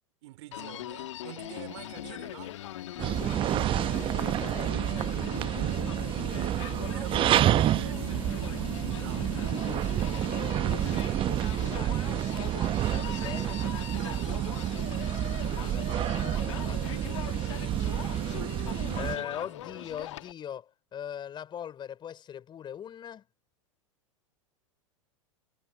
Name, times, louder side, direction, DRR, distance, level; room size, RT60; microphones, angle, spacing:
voice 1, 0.2-2.6 6.9-8.6 8.9-9.4 13.9-14.8 16.9-18.7 19.0-19.9, right 17 dB, 60° right, 3.0 m, -48 dB
Human voice, 0.5-20.3, left 14 dB, 65° left, 1.6 m, -40 dB
sound 1, 1.7-19.3, right 8 dB, 75° right, 5.1 m, -55 dB
sound 2, 3.0-19.2, right 12 dB, 30° right, 1.0 m, -29 dB
voice 2, 4.3-4.9 10.2-10.7 11.7-12.6 12.9-13.6 15.5-16.9 18.9-23.3, left 9 dB, 30° left, 5.5 m, -41 dB
figure-of-eight pair, 95°, 17 cm